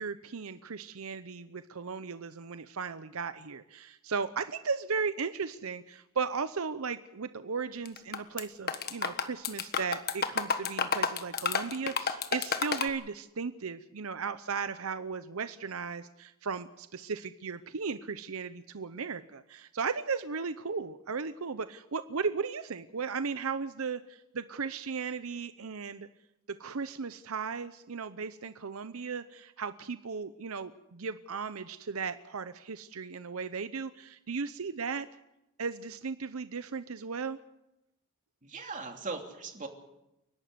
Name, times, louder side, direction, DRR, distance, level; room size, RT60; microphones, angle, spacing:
voice 1, 0.0-26.1 26.5-35.1 35.6-37.4, right 5 dB, 85° right, 12 dB, 0.8 m, -36 dB
sound 1, 7.8-8.4 8.7-12.9, left 6 dB, 50° left, 1.5 m, -30 dB
voice 2, 38.4-39.7, right 3 dB, 40° right, 3 dB, 2.9 m, -39 dB
30.0 x 12.0 x 8.0 m, 0.90 s
head